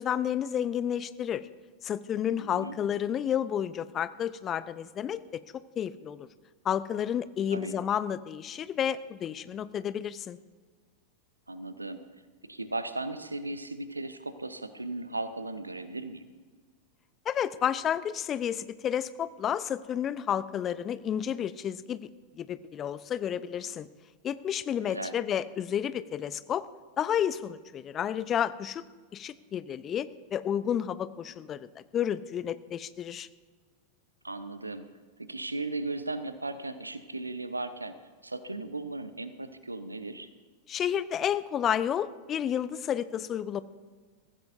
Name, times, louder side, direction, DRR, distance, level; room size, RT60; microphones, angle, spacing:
voice 1, 0.0-1.4 1.8-5.4 5.8-6.3 6.6-10.4 17.3-22.1 22.4-23.9 24.2-26.6 27.0-28.8 29.1-31.7 31.9-33.3 40.7-43.6, left 9 dB, 25° left, 16 dB, 0.6 m, -31 dB
voice 2, 2.3-2.8 7.5-7.7 11.5-12.0 12.5-16.2 24.8-25.2 34.2-34.9 35.2-37.9 38.2-40.3, right 2 dB, 80° right, 12 dB, 0.8 m, -36 dB
22.0 x 15.0 x 2.7 m, 1.5 s
figure-of-eight pair, 90°, 0 cm